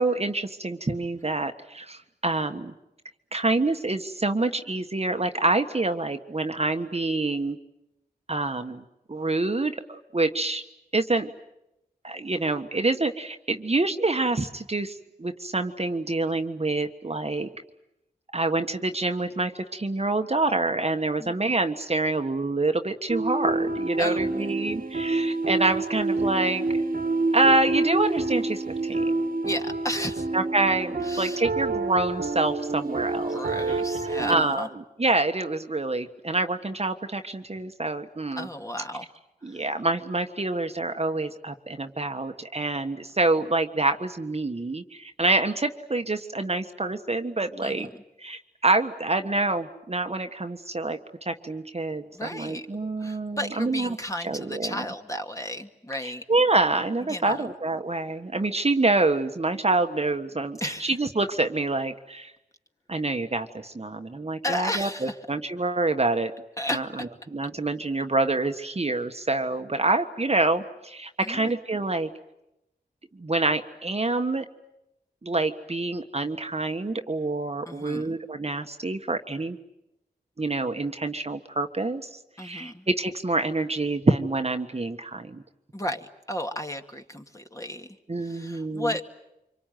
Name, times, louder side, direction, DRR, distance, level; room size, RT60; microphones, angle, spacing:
voice 1, 0.0-2.7 3.3-7.6 8.3-8.8 9.1-10.6 10.9-11.3 12.0-17.5 18.3-26.6 27.3-29.1 30.3-33.4 33.7-33.8 34.3-34.7 35.0-38.5 39.4-47.9 48.2-51.0 51.2-54.0 54.2-54.8 56.0-62.3 62.9-66.3 66.7-66.9 67.3-72.1 73.2-74.4 75.2-79.6 80.4-82.1 82.4-85.4 88.1-89.0, right 2 dB, 35° right, 6 dB, 1.5 m, -26 dB
sound 1, 23.1-34.4, right 3 dB, 55° right, 1.8 m, -27 dB
voice 2, 24.0-24.5 29.4-30.3 31.0-31.4 33.3-34.7 38.4-39.1 47.6-47.9 52.1-52.7 53.0-56.2 57.1-57.5 60.6-60.9 64.4-65.2 66.6-67.1 71.2-71.6 77.7-78.2 82.4-82.9 85.7-87.9 88.2-89.0, left 1 dB, 20° left, 4 dB, 2.2 m, -33 dB
25.5 x 24.0 x 9.3 m, 0.90 s
cardioid pair, 50°, 17 cm